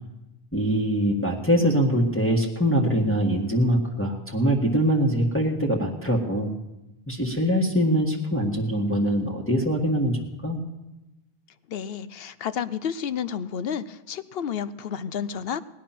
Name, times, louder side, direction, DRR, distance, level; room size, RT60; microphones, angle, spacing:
voice 1, 0.5-6.5 7.1-10.6, equal, 10° left, -1 dB, 1.7 m, -23 dB
voice 2, 11.7-15.6, left 8 dB, 70° left, 14 dB, 0.9 m, -31 dB
19.5 x 10.5 x 5.9 m, 0.98 s
omnidirectional pair, 1.1 m